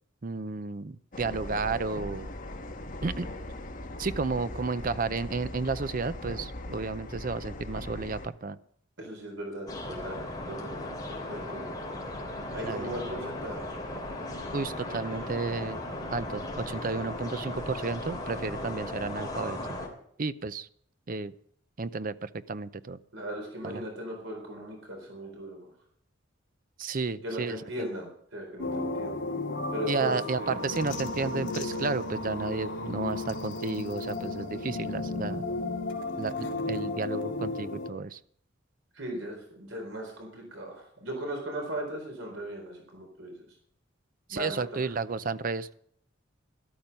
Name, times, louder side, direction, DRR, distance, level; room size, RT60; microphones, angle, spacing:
voice 1, 0.2-2.3 3.0-3.3 4.0-8.6 12.6-12.9 14.5-15.8 16.1-19.6 20.2-20.7 21.1-21.3 21.8-23.0 23.6-23.8 26.8-27.6 29.9-35.4 36.2-38.2 44.3-45.7, right 4 dB, 45° right, 14 dB, 0.6 m, -32 dB
sound 1, 1.1-8.3, left 1 dB, 45° left, 1.5 m, -39 dB
voice 2, 9.0-10.2 10.5-11.7 12.5-13.7 23.1-25.7 27.2-29.2 29.7-30.6 38.9-43.5 44.3-44.6, right 1 dB, 75° right, 1 dB, 4.1 m, -38 dB
sound 2, 9.7-19.9, left 1 dB, 20° left, 3.3 m, -37 dB
sound 3, 28.6-37.9, left 2 dB, 70° left, 2.3 m, -34 dB
13.5 x 12.0 x 5.4 m, 0.64 s
head